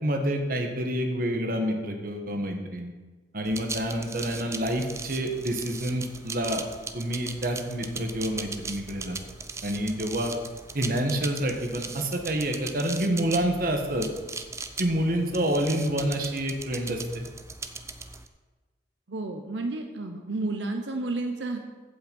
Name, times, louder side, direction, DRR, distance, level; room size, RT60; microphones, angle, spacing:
voice 1, 0.0-2.9 3.3-6.6 6.9-9.2 9.6-10.3 10.7-14.1 14.8-17.2, right 1 dB, 50° right, 4 dB, 1.4 m, -28 dB
sound 1, 3.5-18.3, right 4 dB, 15° right, 0.5 m, -39 dB
voice 2, 19.1-21.6, right 2 dB, 85° right, 4 dB, 0.9 m, -31 dB
15.0 x 5.8 x 5.3 m, 1.3 s
head